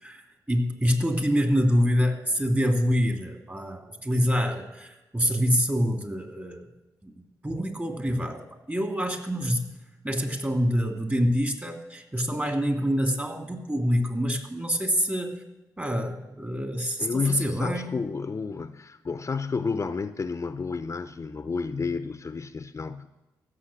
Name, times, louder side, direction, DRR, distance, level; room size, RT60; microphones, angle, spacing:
voice 1, 0.0-6.6 7.0-8.4 8.7-9.7 10.0-15.4 15.8-17.1 17.4-17.9, equal, 20° right, 4 dB, 2.6 m, -26 dB
voice 2, 17.0-23.1, left 4 dB, 40° left, 11 dB, 0.6 m, -31 dB
15.0 x 6.8 x 7.1 m, 1.0 s
supercardioid pair, 50°, 8 cm